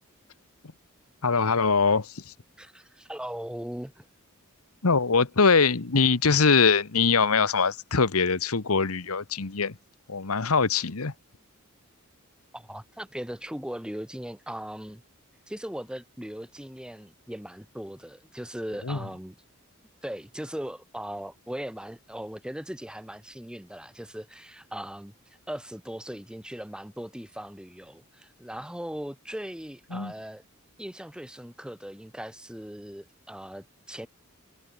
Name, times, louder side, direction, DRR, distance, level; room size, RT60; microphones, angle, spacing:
voice 1, 1.2-2.3 4.8-9.8 10.1-11.1 18.8-19.0 29.9-30.1, left 5 dB, 85° left, 1.3 m, -23 dB
voice 2, 2.6-4.1 12.5-15.0 15.5-19.3 20.0-30.4 30.8-34.1, equal, 5° right, 1.1 m, -39 dB
head